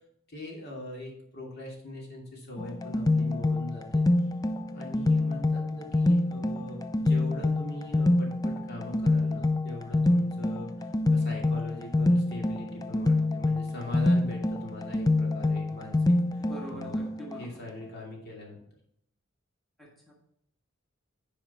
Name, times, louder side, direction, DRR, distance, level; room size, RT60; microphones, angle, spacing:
voice 1, 0.3-4.0 4.7-17.1 17.4-18.6, left 1 dB, 55° left, -2 dB, 2.6 m, -41 dB
sound 1, 2.6-17.4, left 2 dB, 20° left, 0.4 m, -26 dB
voice 2, 16.5-17.6 19.8-20.1, equal, ahead, -3 dB, 1.6 m, -44 dB
9.5 x 5.1 x 4.3 m, 0.73 s
head